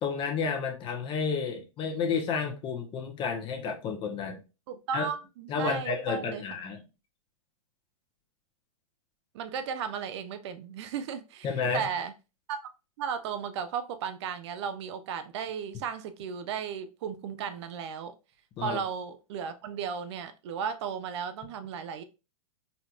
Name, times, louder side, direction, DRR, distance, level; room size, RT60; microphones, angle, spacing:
voice 1, 0.0-4.4 4.9-5.1 5.5-6.8 11.4-11.8 18.6-18.8, left 5 dB, 30° left, 0.9 m, -31 dB
voice 2, 4.7-6.4 9.3-12.1 12.5-12.7 13.0-18.1 18.6-22.0, right 7 dB, 55° right, 0.5 m, -35 dB
4.1 x 2.8 x 2.4 m
hypercardioid pair, 120°, 18 cm